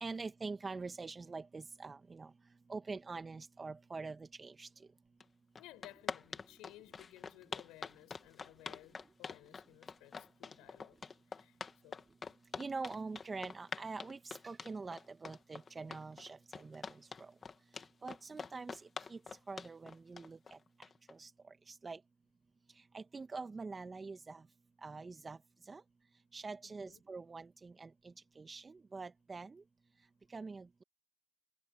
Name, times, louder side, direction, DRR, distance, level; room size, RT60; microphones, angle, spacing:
voice 1, 0.0-2.3 2.7-4.7 12.6-16.9 17.2-17.3 18.0-18.8 19.1-19.2 19.5-20.6 21.1-21.3 21.7-22.0 22.9-24.4 24.8-25.4 25.7-25.8 26.3-29.6 30.3-30.8, right 4 dB, 20° right, 1.6 m, -45 dB
sound 1, 5.2-5.3 5.5-21.1, left 5 dB, 25° left, 2.3 m, -45 dB
voice 2, 5.6-11.0 11.3-12.0 26.6-27.0, left 18 dB, 60° left, 5.8 m, -58 dB
supercardioid pair, 100°, 0 cm